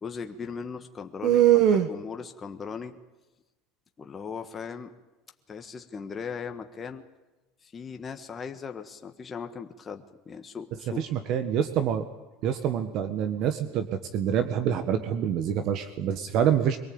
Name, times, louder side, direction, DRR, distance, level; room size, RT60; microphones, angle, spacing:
voice 1, 0.0-1.4 1.9-3.0 4.0-4.9 5.5-7.0 7.6-11.1, left 6 dB, 25° left, 6 dB, 1.5 m, -38 dB
voice 2, 1.2-1.9 11.0-12.1 12.4-16.8, right 9 dB, 55° right, 9 dB, 1.5 m, -25 dB
23.5 x 18.0 x 8.8 m, 1.1 s
supercardioid pair, 130°, 0 cm